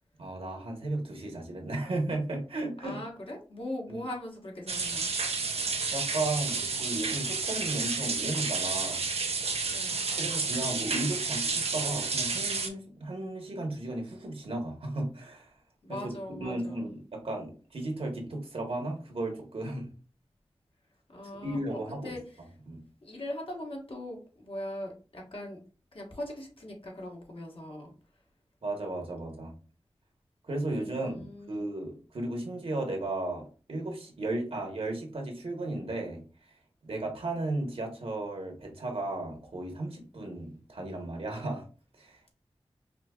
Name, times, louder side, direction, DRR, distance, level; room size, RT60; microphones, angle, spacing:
voice 1, 0.2-3.0 3.9-4.0 5.9-9.1 10.2-15.5 15.9-19.9 21.4-22.2 22.7-22.8 28.6-29.5 30.5-36.2 36.8-41.6 42.0-42.3, right 2 dB, 70° right, 1 dB, 1.2 m, -35 dB
voice 2, 2.8-5.1 9.7-10.0 15.8-16.9 21.1-22.2 23.0-25.6 25.9-27.9 30.7-31.7, left 1 dB, 65° left, -1 dB, 1.4 m, -40 dB
sound 1, 4.7-12.7, right 4 dB, 85° right, 0.6 m, -31 dB
5.0 x 2.8 x 2.4 m, 0.37 s
cardioid pair, 45°, 10 cm